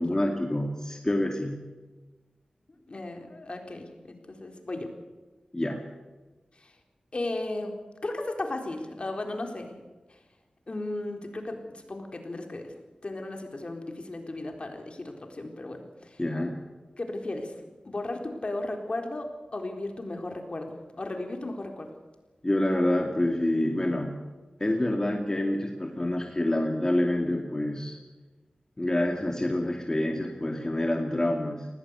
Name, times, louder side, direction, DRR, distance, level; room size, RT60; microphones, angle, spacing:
voice 1, 0.0-1.7 5.5-5.8 16.2-16.6 22.4-24.2 24.6-28.0 28.8-31.7, left 1 dB, 25° left, 2 dB, 2.5 m, -27 dB
voice 2, 2.9-4.9 6.5-6.7 7.1-7.7 8.0-9.8 10.1-10.2 10.7-12.7 13.0-16.2 17.0-17.5 17.8-21.9, left 2 dB, 50° left, 4 dB, 4.0 m, -35 dB
20.0 x 18.0 x 8.2 m, 1.2 s
wide cardioid pair, 60°, 2 cm